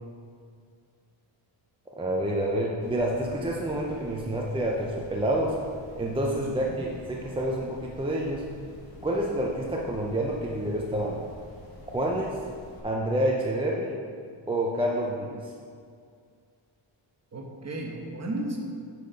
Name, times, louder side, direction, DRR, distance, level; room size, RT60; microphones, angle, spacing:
voice 1, 2.0-5.6 6.0-8.5 9.0-11.2 11.9-12.4 12.8-14.0 14.5-15.4, right 1 dB, 10° right, -2 dB, 0.4 m, -28 dB
sound 1, 2.8-12.8, left 1 dB, 45° left, 1.3 m, -48 dB
voice 2, 6.3-6.8 17.3-18.6, right 1 dB, 30° right, 0 dB, 1.0 m, -34 dB
8.3 x 4.4 x 5.1 m, 2.2 s
wide cardioid pair, 175°, 49 cm